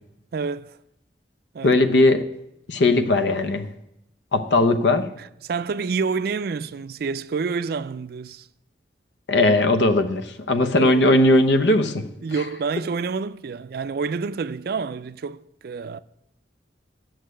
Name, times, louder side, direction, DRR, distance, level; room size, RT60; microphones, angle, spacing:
voice 1, 0.3-0.8 1.5-1.8 5.2-8.5 10.7-11.0 12.2-16.0, right 5 dB, 60° right, 0.4 m, -28 dB
voice 2, 1.6-2.2 2.7-3.7 4.3-5.1 9.3-12.0, left 2 dB, 85° left, 0.8 m, -18 dB
8.4 x 6.4 x 7.8 m
head